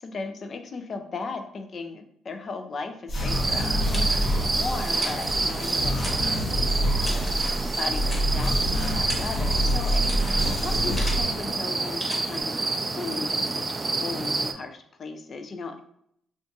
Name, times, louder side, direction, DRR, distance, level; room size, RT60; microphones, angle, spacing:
voice 1, 0.0-7.3 7.8-10.2 10.6-13.6 13.9-15.8, left 4 dB, 45° left, 6 dB, 0.4 m, -37 dB
sound 1, 3.1-11.2, equal, 65° left, 0.9 m, -27 dB
sound 2, 3.3-14.5, right 3 dB, 25° right, 0.3 m, -28 dB
sound 3, 3.9-4.6 4.9-6.7 7.0-7.6 8.0-8.5 8.8-11.5 12.0-12.4, equal, 5° left, 1.1 m, -39 dB
2.5 x 2.3 x 3.9 m, 0.70 s
cardioid pair, 90°, 0 cm